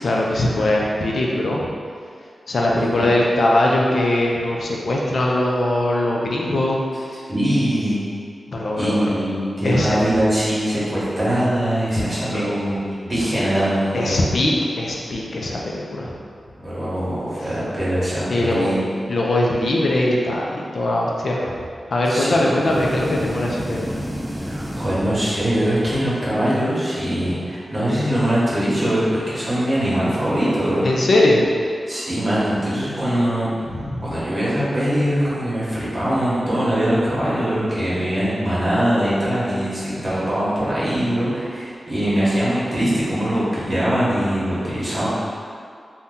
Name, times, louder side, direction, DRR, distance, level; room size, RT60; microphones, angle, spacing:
voice 1, 0.0-1.7 2.5-6.8 8.5-9.2 9.6-10.0 12.2-12.5 13.9-16.1 18.3-18.7 19.1-21.6 21.9-24.0 30.8-31.5 33.6-34.1, left 1 dB, 60° left, -2 dB, 0.4 m, -21 dB
voice 2, 2.7-3.1 7.3-8.0 8.7-12.8 13.0-14.2 16.6-18.8 22.1-22.7 24.4-30.8 31.9-33.5 34.0-45.1, equal, 30° right, -10 dB, 1.0 m, -22 dB
sound 1, 22.6-25.8, equal, 10° right, 0.3 m, -30 dB
2.7 x 2.2 x 3.6 m, 2.3 s
wide cardioid pair, 125°, 0 cm